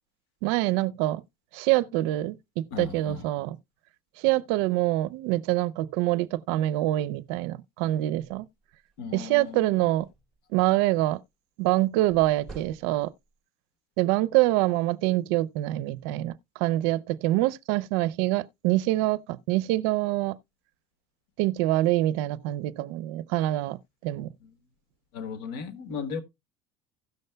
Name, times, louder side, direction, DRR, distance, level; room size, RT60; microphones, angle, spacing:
voice 1, 0.4-1.2 1.5-3.6 4.2-8.4 9.1-10.1 10.5-11.2 11.6-13.1 14.0-20.4 21.4-24.3, right 16 dB, 80° right, 0.5 m, -25 dB
voice 2, 2.7-3.2 9.0-9.7 24.4-24.5 25.1-26.2, left 6 dB, 85° left, 1.3 m, -36 dB
sound 1, 8.4-8.5 8.9-9.0 9.3-10.4 12.1-13.3, right 3 dB, 5° left, 4.5 m, -48 dB
16.5 x 6.6 x 2.2 m
supercardioid pair, 120°, 14 cm